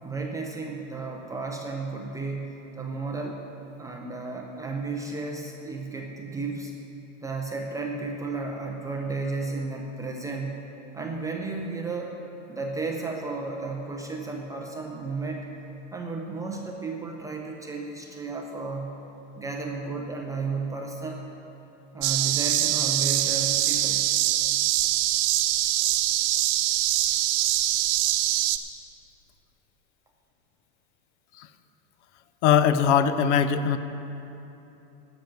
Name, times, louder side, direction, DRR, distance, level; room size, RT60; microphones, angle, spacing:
voice 1, 0.0-3.4 3.8-6.7 7.2-10.7 10.9-12.2 12.5-15.5 15.9-19.0 19.4-21.2 21.9-24.1, right 3 dB, 10° right, 1 dB, 0.3 m, -33 dB
sound 1, 22.0-28.6, right 14 dB, 60° right, 0.7 m, -24 dB
voice 2, 32.4-33.8, left 8 dB, 65° left, 12 dB, 0.7 m, -21 dB
13.0 x 5.9 x 8.9 m, 3.0 s
supercardioid pair, 145°, 38 cm